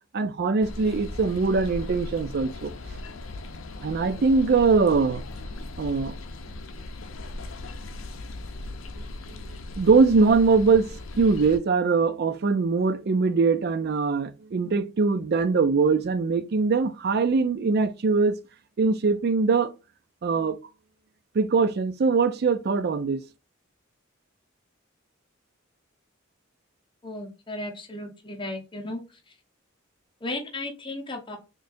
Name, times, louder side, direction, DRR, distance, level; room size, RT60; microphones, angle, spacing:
voice 1, 0.1-2.7 3.8-5.2 5.8-6.1 9.5-18.4 18.8-19.7 20.2-20.6 21.3-23.2, right 4 dB, 50° right, 0.4 m, -22 dB
sound 1, 0.6-11.6, left 2 dB, 70° left, 0.5 m, -38 dB
voice 2, 27.0-29.0 30.2-31.4, left 2 dB, 25° left, 0.9 m, -35 dB
4.2 x 3.1 x 2.6 m
head